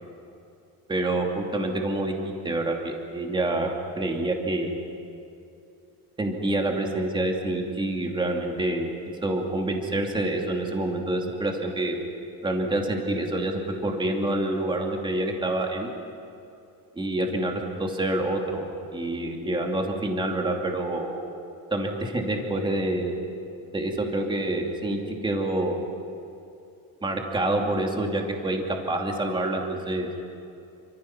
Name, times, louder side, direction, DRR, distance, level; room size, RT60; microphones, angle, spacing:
voice 1, 0.9-4.8 6.2-8.9 9.2-12.0 12.4-15.9 17.0-18.7 18.9-21.2 21.7-23.1 23.7-25.8 27.0-30.1, right 1 dB, 15° right, 1 dB, 2.7 m, -27 dB
29.0 x 26.0 x 5.9 m, 2.6 s
cardioid pair, 160°, 35 cm